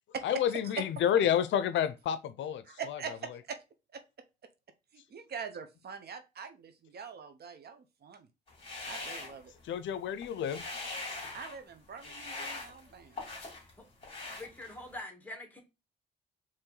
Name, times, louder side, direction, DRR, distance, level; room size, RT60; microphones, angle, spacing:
voice 1, 0.2-3.0 9.6-10.6 11.1-11.4, left 9 dB, 70° left, 0.5 m, -30 dB
voice 2, 2.6-3.6 3.9-4.0 4.9-8.3 8.9-9.5 11.3-13.2, right 6 dB, 55° right, 0.8 m, -43 dB
sound 1, 8.5-9.9 10.2-11.6 12.0-13.7 14.0-15.0, left 3 dB, 25° left, 2.5 m, -42 dB
voice 3, 14.4-15.6, left 1 dB, 10° left, 1.9 m, -44 dB
4.4 x 3.0 x 3.9 m
cardioid pair, 90°, 20 cm